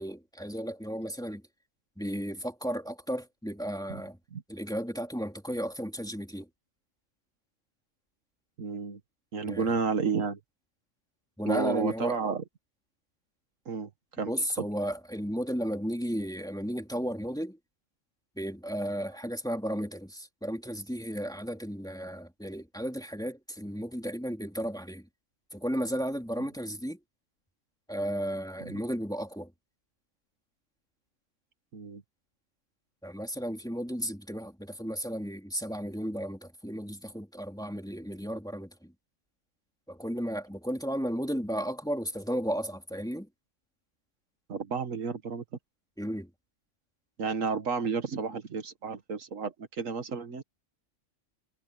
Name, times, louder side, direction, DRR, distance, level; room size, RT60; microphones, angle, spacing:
voice 1, 0.0-1.4 2.0-4.2 4.5-6.5 9.4-9.7 11.4-12.2 14.3-17.6 18.4-25.1 25.5-27.0 27.9-29.5 33.0-38.9 39.9-43.3 46.0-46.3, equal, 5° left, 3.1 m, -34 dB
voice 2, 8.6-9.0 9.3-10.4 11.5-12.4 13.7-13.9 14.2-14.3 28.6-28.8 31.7-32.0 44.5-45.4 47.2-50.4, right 5 dB, 75° right, 1.8 m, -31 dB
omnidirectional pair, 1.4 m